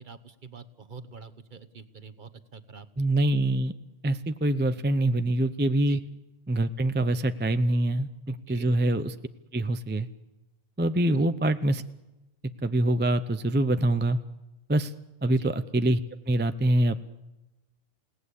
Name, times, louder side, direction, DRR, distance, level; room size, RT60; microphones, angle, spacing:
voice 1, 0.0-3.1 5.9-6.0 8.3-8.7 11.1-11.3 15.3-15.5, right 5 dB, 40° right, 12 dB, 1.2 m, -46 dB
voice 2, 3.0-3.7 4.0-6.0 6.5-9.1 9.5-10.1 10.8-11.8 12.6-14.2 14.7-14.9 15.2-16.0 16.3-17.0, right 1 dB, 10° right, 10 dB, 0.5 m, -25 dB
28.5 x 18.0 x 8.4 m, 1.0 s
omnidirectional pair, 1.4 m